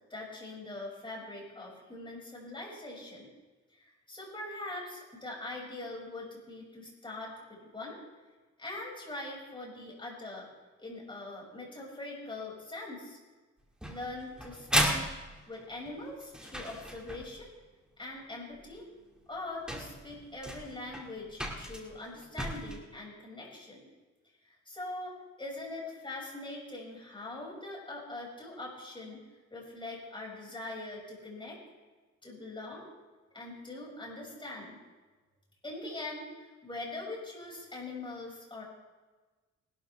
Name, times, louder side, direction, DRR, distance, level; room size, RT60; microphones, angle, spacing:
voice 1, 0.1-3.3 3.7-8.0 8.6-10.5 10.8-13.2 13.9-15.1 15.5-17.5 18.0-18.8 19.3-23.8 24.4-29.2 29.5-31.6 32.2-32.9 33.3-34.8 35.6-38.6, left 2 dB, 15° left, -3 dB, 5.7 m, -42 dB
sound 1, 13.8-17.4 18.8-18.9 19.4-19.5 19.7-22.8, equal, 5° right, 2.2 m, -34 dB
20.0 x 12.5 x 3.4 m, 1.3 s
cardioid pair, 90°, 30 cm